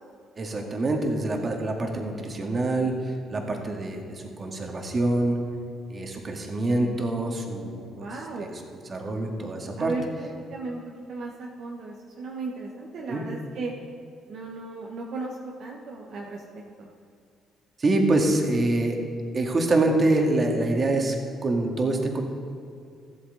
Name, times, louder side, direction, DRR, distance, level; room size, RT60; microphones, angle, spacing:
voice 1, 0.4-5.4 5.9-8.1 8.4-8.6 8.9-9.9 13.1-13.2 17.8-19.0 19.3-21.2 21.4-22.2, right 2 dB, 40° right, 1 dB, 2.0 m, -25 dB
voice 2, 7.9-8.5 9.8-10.8 11.1-13.7 14.3-16.4 16.8-16.9, right 3 dB, 65° right, -1 dB, 1.1 m, -35 dB
14.0 x 8.3 x 4.0 m, 2.3 s
supercardioid pair, 60°, 0 cm